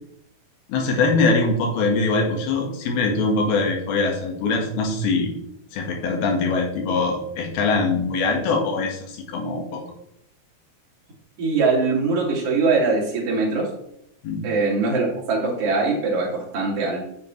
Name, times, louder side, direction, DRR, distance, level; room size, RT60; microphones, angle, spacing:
voice 1, 0.7-5.3 5.7-9.8 14.2-14.4, left 3 dB, 80° left, 2 dB, 3.5 m, -22 dB
voice 2, 11.4-13.7 14.4-17.0, right 3 dB, 40° right, -3 dB, 3.2 m, -22 dB
9.5 x 8.3 x 3.2 m, 0.74 s
omnidirectional pair, 4.4 m